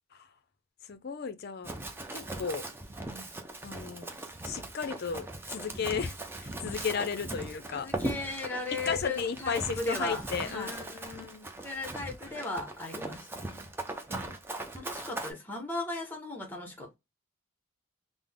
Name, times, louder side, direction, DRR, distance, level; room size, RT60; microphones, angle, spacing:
voice 1, 0.8-1.7 2.1-2.6 3.6-4.1 4.4-7.9 8.9-11.5, left 6 dB, 45° left, 0.5 m, -34 dB
Run, 1.6-15.3, right 1 dB, 10° right, 0.4 m, -39 dB
voice 2, 7.7-10.7 11.6-13.7 14.1-14.4 14.7-17.0, left 2 dB, 10° left, 0.8 m, -37 dB
3.7 x 2.0 x 3.4 m
head